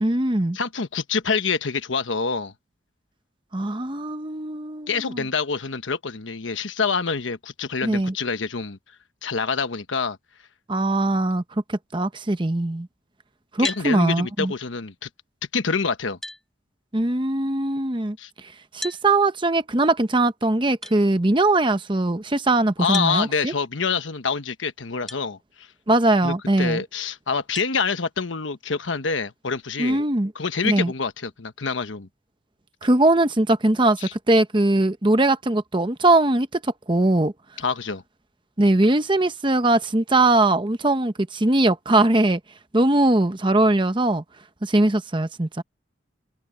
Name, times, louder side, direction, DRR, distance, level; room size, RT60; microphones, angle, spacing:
voice 1, 0.0-0.6 3.5-5.2 7.8-8.1 10.7-11.4 11.7-12.9 13.5-14.5 16.9-18.2 18.7-23.5 25.9-26.8 29.8-30.3 30.6-30.9 32.8-34.0 34.3-36.6 36.9-37.3 38.6-42.4 42.7-44.2 44.6-45.6, right 2 dB, 25° right, 0.9 m, -21 dB
voice 2, 0.5-2.5 4.9-8.8 9.2-10.2 13.6-15.1 15.5-16.2 18.2-18.3 22.8-25.7 26.2-30.0 30.3-32.1 34.0-34.1 37.6-38.0, left 5 dB, 80° left, 1.1 m, -26 dB
sound 1, 13.6-13.9 15.6-15.7 16.2-16.4 18.8-19.0 20.8-21.0 22.9-23.2 25.1-25.2 25.9-26.0 27.5-27.7, left 1 dB, ahead, 3.6 m, -33 dB
head